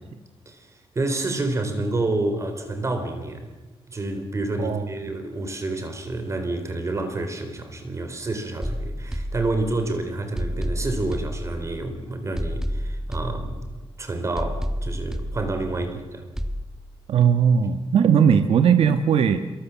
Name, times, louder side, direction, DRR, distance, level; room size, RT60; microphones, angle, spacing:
voice 1, 0.5-3.5 3.9-16.3, right 2 dB, 30° right, 7 dB, 4.0 m, -29 dB
sound 1, 8.6-9.9 10.4-11.9 12.4-13.9 14.4-15.9 16.4-16.6, equal, 5° right, 1.3 m, -30 dB
voice 2, 17.1-19.4, right 7 dB, 75° right, 9 dB, 1.4 m, -18 dB
27.0 x 23.5 x 7.4 m, 1.2 s
wide cardioid pair, 145°, 10 cm